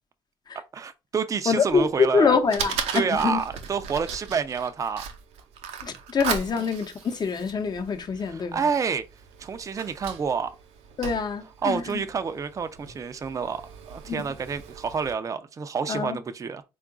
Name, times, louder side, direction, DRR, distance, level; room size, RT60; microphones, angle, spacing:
voice 1, 0.7-2.3 2.9-5.0 8.3-9.0 9.4-10.6 11.6-13.6 13.9-16.6, right 6 dB, 30° right, 0.4 m, -28 dB
voice 2, 1.5-3.4 5.8-8.7 11.0-12.0 14.1-14.2 15.9-16.2, left 5 dB, 40° left, 0.8 m, -25 dB
Fire, 1.7-15.1, right 7 dB, 85° right, 0.6 m, -38 dB
3.7 x 2.4 x 3.6 m
supercardioid pair, 75°, 10 cm